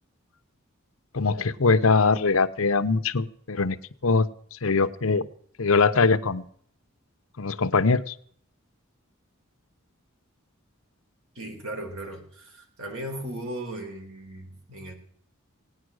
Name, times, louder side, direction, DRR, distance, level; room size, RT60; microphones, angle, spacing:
voice 1, 1.1-3.8 4.0-5.3 5.6-6.4 7.4-8.1, left 4 dB, 75° left, 11 dB, 0.9 m, -22 dB
voice 2, 11.4-14.9, right 1 dB, 85° right, 3 dB, 4.1 m, -37 dB
18.0 x 9.7 x 6.4 m, 0.62 s
head